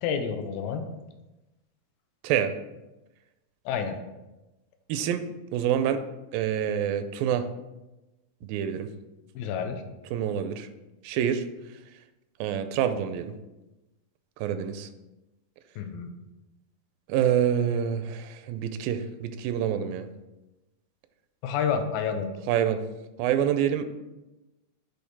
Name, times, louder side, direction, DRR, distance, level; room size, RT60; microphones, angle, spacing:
voice 1, 0.0-0.8 3.7-4.0 9.4-9.8 15.8-16.1 21.4-22.3, left 7 dB, 90° left, 6 dB, 2.4 m, -29 dB
voice 2, 4.9-5.3 5.5-6.0 6.3-7.5 8.4-8.9 10.1-10.7 11.0-11.8 12.4-13.3 14.4-14.9 17.1-20.1 22.5-22.8 23.2-23.9, right 9 dB, 85° right, 10 dB, 2.3 m, -27 dB
8.5 x 3.3 x 4.6 m, 1.0 s
omnidirectional pair, 4.0 m